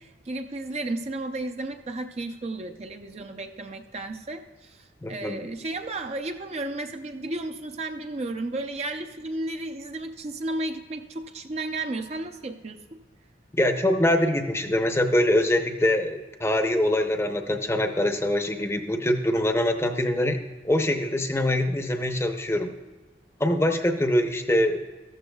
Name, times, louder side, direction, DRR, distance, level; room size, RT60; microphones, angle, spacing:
voice 1, 0.0-13.0, right 2 dB, 35° right, 6 dB, 0.5 m, -33 dB
voice 2, 5.0-5.4 13.5-20.4 20.6-22.7 23.4-24.8, left 1 dB, 15° left, 5 dB, 0.7 m, -24 dB
13.5 x 13.5 x 2.3 m, 1.2 s
head